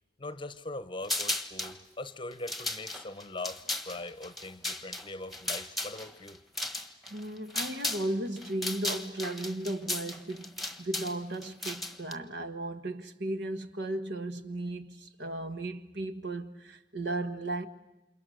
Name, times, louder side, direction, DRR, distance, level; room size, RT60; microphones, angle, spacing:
voice 1, 0.2-6.4, left 2 dB, 25° left, 0.9 m, -41 dB
sound 1, 1.0-1.8 2.3-8.1 8.4-12.1, left 2 dB, ahead, 1.5 m, -35 dB
voice 2, 7.1-17.7, right 1 dB, 65° right, 1.5 m, -35 dB
29.0 x 28.0 x 6.5 m
head